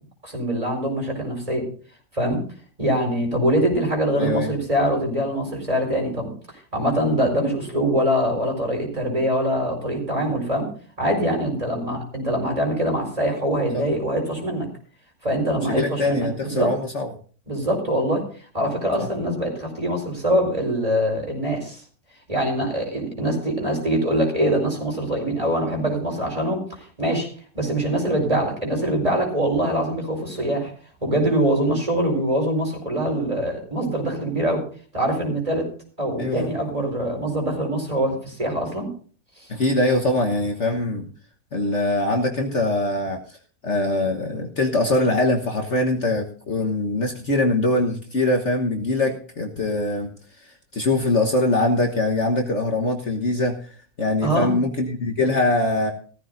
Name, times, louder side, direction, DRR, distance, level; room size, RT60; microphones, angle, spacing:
voice 1, 0.2-1.7 2.1-2.4 2.8-6.3 6.7-10.7 11.0-14.7 15.2-16.7 17.5-18.2 18.5-21.8 22.3-26.6 27.0-27.3 27.5-30.7 31.0-34.6 34.9-35.7 36.0-38.9 39.4-39.5 54.2-54.6, right 1 dB, 20° right, 1 dB, 4.8 m, -23 dB
voice 2, 4.2-4.5 13.7-13.8 15.6-17.1 19.0-19.1 36.2-36.5 39.5-41.1 41.5-43.4 43.6-50.1 50.4-53.7 54.0-55.9, left 2 dB, 50° left, 2 dB, 1.5 m, -23 dB
17.0 x 14.5 x 2.6 m, 0.42 s
omnidirectional pair, 1.7 m